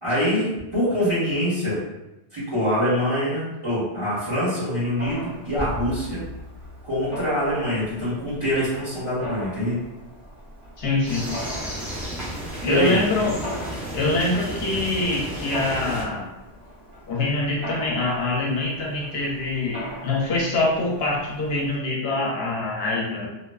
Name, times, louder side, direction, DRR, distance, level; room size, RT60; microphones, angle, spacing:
voice 1, 0.0-1.8 2.3-6.2 6.8-9.8 12.6-13.0, equal, 30° right, -11 dB, 1.2 m, -24 dB
Mechanisms, 5.0-21.8, equal, 55° right, 1.0 m, -40 dB
sound 1, 5.6-8.2, right 1 dB, 90° right, 0.9 m, -36 dB
voice 2, 10.8-11.3 12.6-13.3 13.9-16.2 17.1-23.3, left 2 dB, 70° left, -3 dB, 0.8 m, -24 dB
sound 2, 11.0-16.0, equal, 5° right, 0.3 m, -33 dB
2.4 x 2.2 x 2.2 m, 0.95 s
omnidirectional pair, 1.1 m